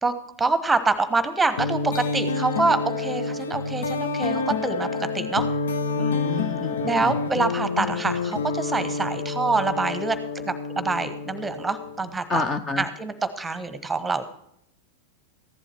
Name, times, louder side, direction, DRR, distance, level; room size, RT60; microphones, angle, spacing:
voice 1, 0.0-4.9 5.1-5.5 6.0-6.2 6.8-12.4 12.8-14.2, right 3 dB, 10° right, 11 dB, 1.1 m, -26 dB
sound 1, 1.6-12.2, left 4 dB, 65° left, 0.7 m, -28 dB
voice 2, 5.9-7.2 12.3-12.9, left 4 dB, 20° left, 10 dB, 0.9 m, -29 dB
15.0 x 11.0 x 4.5 m, 0.74 s
figure-of-eight pair, 90°, 0 cm